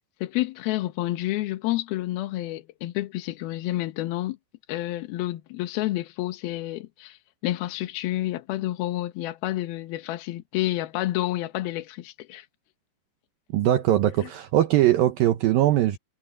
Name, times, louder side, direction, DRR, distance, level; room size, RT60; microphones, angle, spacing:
voice 1, 0.2-4.4 4.7-7.2 7.4-12.4 14.2-14.3, left 16 dB, 70° left, 2.6 m, -29 dB
voice 2, 13.5-16.0, right 13 dB, 80° right, 2.0 m, -21 dB
omnidirectional pair, 5.5 m